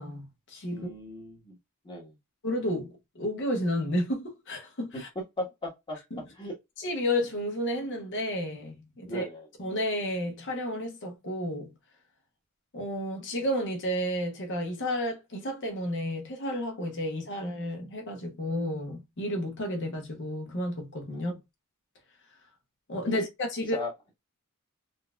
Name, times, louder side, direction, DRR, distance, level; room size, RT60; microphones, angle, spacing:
voice 1, 0.0-0.9 2.4-5.1 6.1-6.2 6.8-9.3 9.6-11.7 12.7-21.4 22.9-23.8, left 1 dB, 60° left, 0.9 m, -31 dB
voice 2, 0.7-1.6 1.8-2.2 5.4-6.0 6.3-6.5 9.1-9.5 21.1-21.3 23.1-23.2 23.6-23.9, left 1 dB, 20° left, 1.2 m, -37 dB
3.8 x 2.4 x 2.3 m
head